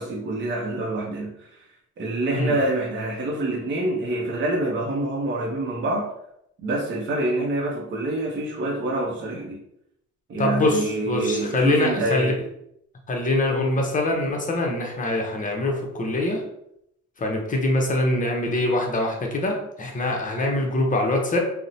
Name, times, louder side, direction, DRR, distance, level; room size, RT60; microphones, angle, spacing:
voice 1, 0.0-1.7 2.0-6.1 6.6-9.6 10.3-12.3, right 2 dB, 40° right, -2 dB, 0.6 m, -26 dB
voice 2, 10.4-12.3 13.1-16.4 17.2-21.4, left 1 dB, 25° left, 1 dB, 0.6 m, -24 dB
2.8 x 2.0 x 2.6 m, 0.77 s
cardioid pair, 90°, 30 cm